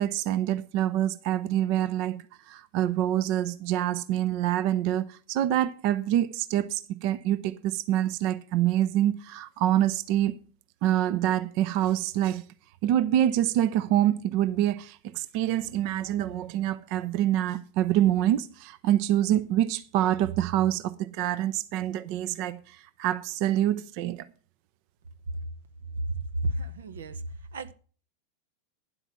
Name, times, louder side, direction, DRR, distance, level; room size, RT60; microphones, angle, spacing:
voice 1, 0.0-10.3 10.8-12.4 12.8-24.3, right 12 dB, 55° right, 0.6 m, -26 dB
voice 2, 26.2-27.2 27.5-27.7, right 1 dB, 85° right, 0.9 m, -32 dB
10.0 x 8.0 x 5.9 m
hypercardioid pair, 105°, 0 cm